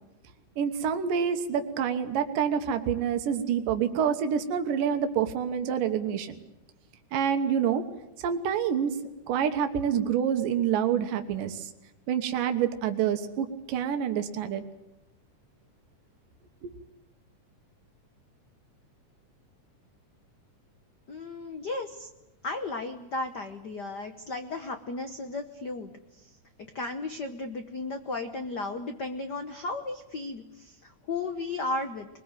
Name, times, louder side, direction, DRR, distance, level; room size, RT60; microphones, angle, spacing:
voice 1, 0.6-6.4 7.1-7.8 8.2-9.0 9.3-11.7 12.1-14.6 16.6-16.7, right 8 dB, 85° right, 7 dB, 2.9 m, -27 dB
voice 2, 21.1-22.1 22.4-26.2 26.7-32.1, left 3 dB, 85° left, 7 dB, 0.9 m, -35 dB
22.5 x 21.5 x 9.0 m, 0.95 s
omnidirectional pair, 3.7 m